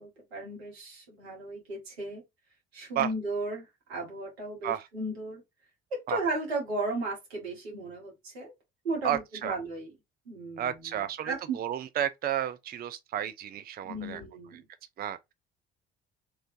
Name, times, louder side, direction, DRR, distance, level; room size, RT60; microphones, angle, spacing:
voice 1, 0.0-2.2 2.7-5.4 5.9-8.5 8.8-9.9 10.3-10.8 11.2-11.6 13.8-14.7, right 2 dB, 85° right, 1.5 m, -35 dB
voice 2, 9.0-9.6 10.6-14.2 14.5-14.6 15.0-15.2, right 10 dB, 30° right, 0.5 m, -32 dB
3.3 x 3.1 x 2.6 m
hypercardioid pair, 55°, 31 cm